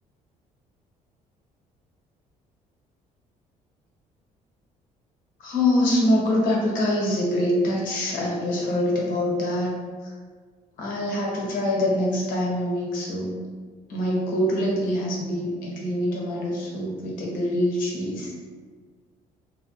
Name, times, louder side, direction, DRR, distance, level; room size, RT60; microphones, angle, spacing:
voice 1, 5.4-9.8 10.0-10.1 10.8-13.4 13.9-18.3, left 1 dB, 85° left, -3 dB, 0.9 m, -24 dB
3.0 x 2.1 x 2.9 m, 1.5 s
cardioid pair, 135°, 14 cm